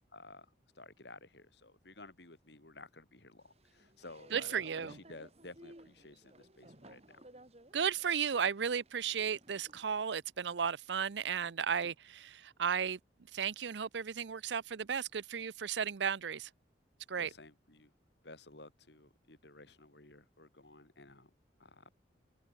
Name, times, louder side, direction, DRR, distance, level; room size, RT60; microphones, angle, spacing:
voice 1, 0.1-7.2 17.2-17.9 18.2-21.3 21.6-21.9, left 2 dB, 65° left, 3.5 m, -54 dB
sound 1, 3.4-10.0, right 1 dB, 35° right, 3.6 m, -58 dB
voice 2, 4.3-4.9 7.7-13.0 13.3-16.5 17.1-17.3, right 7 dB, 75° right, 0.6 m, -34 dB
head